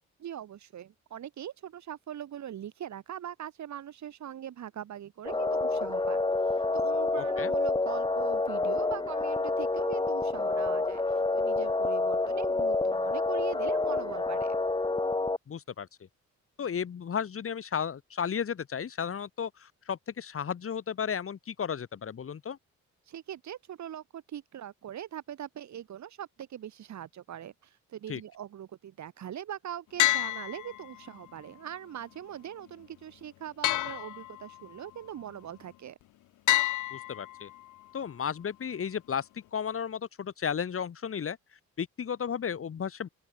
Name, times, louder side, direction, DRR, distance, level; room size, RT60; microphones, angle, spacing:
voice 1, 0.2-14.6 23.1-36.0, right 10 dB, 65° right, 6.9 m, -42 dB
sound 1, 5.2-15.4, left 3 dB, 15° left, 1.8 m, -28 dB
voice 2, 7.2-7.5 15.5-15.9 16.6-22.6 28.1-28.2 36.9-37.5 37.9-41.4 41.8-43.1, left 7 dB, 45° left, 2.7 m, -34 dB
sound 2, 30.0-31.2 33.6-34.7 36.5-37.7, left 16 dB, 80° left, 0.9 m, -29 dB
open air
cardioid pair, 90°, 30 cm